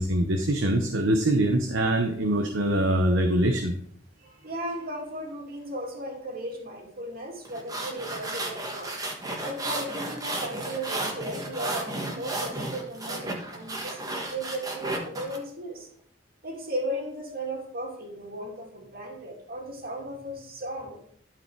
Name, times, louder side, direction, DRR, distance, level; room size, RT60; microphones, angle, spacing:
voice 1, 0.0-3.7, right 1 dB, 80° right, 4 dB, 1.0 m, -23 dB
voice 2, 4.2-8.9 9.4-15.9 16.4-21.0, right 1 dB, 50° right, 0 dB, 2.4 m, -36 dB
sound 1, 7.5-15.4, right 1 dB, 20° right, 1.4 m, -33 dB
12.0 x 5.0 x 4.6 m, 0.64 s
head